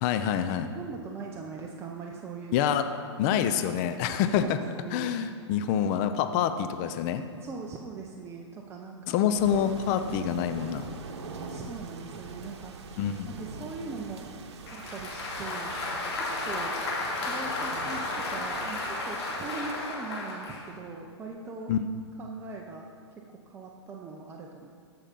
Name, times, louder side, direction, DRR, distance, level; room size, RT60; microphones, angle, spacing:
voice 1, 0.0-0.7 2.5-2.8 3.2-4.6 4.9-7.2 9.1-10.9 13.0-13.3 21.7-21.8, left 9 dB, 35° left, 9 dB, 0.6 m, -26 dB
voice 2, 0.6-2.7 4.4-5.1 7.4-9.2 10.1-10.4 11.5-12.7 13.3-14.2 14.7-15.7 16.1-16.8 17.1-21.7 22.2-22.9 23.5-24.7, right 4 dB, 15° right, 0 dB, 0.7 m, -41 dB
sound 1, 9.4-19.7, right 4 dB, 65° right, 1.1 m, -43 dB
Applause, 14.7-20.7, left 2 dB, 65° left, 2.5 m, -33 dB
sound 2, 14.8-19.2, right 4 dB, 45° right, 1.5 m, -49 dB
14.0 x 5.7 x 5.3 m, 2.2 s
hypercardioid pair, 130°, 15 cm